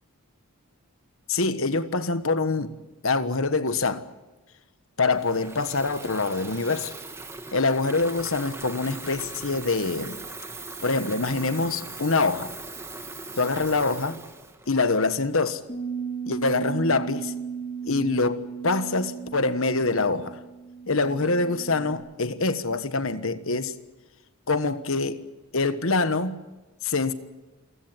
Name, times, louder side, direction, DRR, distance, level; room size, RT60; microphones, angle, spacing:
voice 1, 1.3-2.7 3.0-4.0 5.0-6.9 7.5-10.2 10.8-12.5 13.4-14.2 14.7-15.6 16.3-17.3 17.8-20.4 20.9-23.7 24.5-25.2 25.5-26.4 26.8-27.1, left 3 dB, 60° left, 1.4 m, -25 dB
Water tap faucet / Fill (with liquid), 5.1-15.4, right 3 dB, 10° right, 1.7 m, -40 dB
Bass guitar, 15.7-21.9, right 6 dB, 35° left, 4.0 m, -35 dB
29.0 x 16.0 x 9.2 m
head